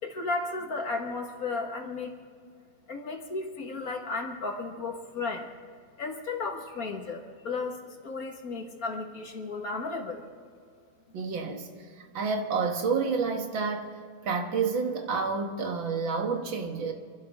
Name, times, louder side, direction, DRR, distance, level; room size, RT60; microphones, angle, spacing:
voice 1, 0.0-2.1 2.9-5.6 6.0-10.2, left 3 dB, 45° left, 1.9 m, -34 dB
voice 2, 11.1-13.9 14.2-16.9, right 5 dB, 65° right, 2.1 m, -29 dB
27.0 x 12.0 x 3.6 m
omnidirectional pair, 2.3 m